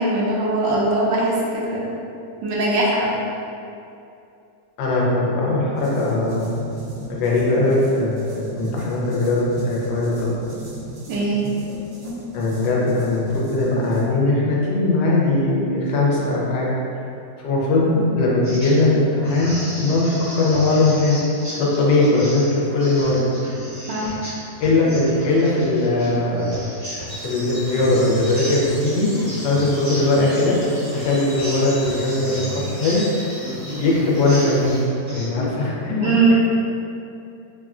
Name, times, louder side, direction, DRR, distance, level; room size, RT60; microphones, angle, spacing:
voice 1, 0.0-1.9 2.4-3.2 11.1-11.5 23.9-24.1 35.4-35.5 36.0-36.4, right 2 dB, 80° right, -4 dB, 1.2 m, -20 dB
voice 2, 4.8-6.7 7.1-10.4 12.3-17.0 17.4-21.2 21.5-23.2 24.6-26.7 27.2-30.6 30.9-33.0 33.8-34.8 35.1-36.1, left 2 dB, 75° left, -4 dB, 1.2 m, -20 dB
sound 1, 5.7-14.0, equal, 55° right, 0.9 m, -34 dB
sound 2, 18.4-18.9 19.2-35.3, equal, 20° right, 0.4 m, -33 dB
sound 3, 27.1-34.8, equal, 20° left, 0.6 m, -37 dB
3.5 x 2.1 x 2.4 m, 2.6 s
omnidirectional pair, 2.0 m